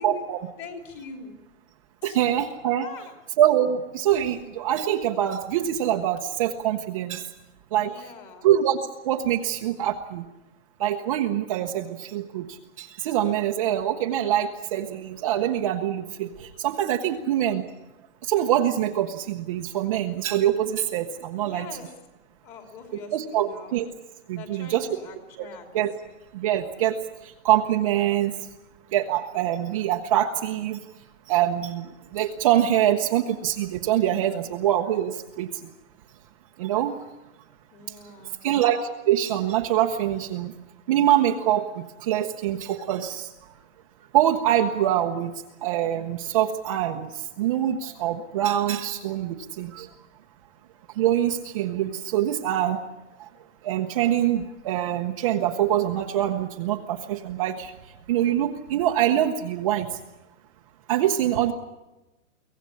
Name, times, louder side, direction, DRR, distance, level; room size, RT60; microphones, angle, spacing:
voice 1, 0.0-0.4 2.0-2.9 3.4-7.3 7.7-7.9 8.4-8.8 9.0-10.3 10.8-12.5 12.8-17.6 18.2-21.7 23.1-23.9 24.3-24.9 25.7-25.9 26.3-27.0 27.2-28.3 28.9-30.8 31.3-31.9 32.1-35.5 36.6-36.9 38.4-38.8 39.1-40.5 40.9-43.3 44.1-45.3 45.6-47.1 47.4-49.9 51.0-52.8 53.2-53.3 53.6-57.7 58.1-59.9 60.9-61.5, right 11 dB, 25° right, 2 dB, 0.8 m, -24 dB
voice 2, 0.6-1.3 2.0-2.2 2.8-3.1 7.8-8.5 17.0-17.2 21.3-21.9 22.4-23.7 24.3-25.7 37.7-38.4, left 3 dB, 25° left, 4 dB, 3.3 m, -42 dB
24.0 x 17.0 x 8.5 m, 1.0 s
hypercardioid pair, 170°, 40 cm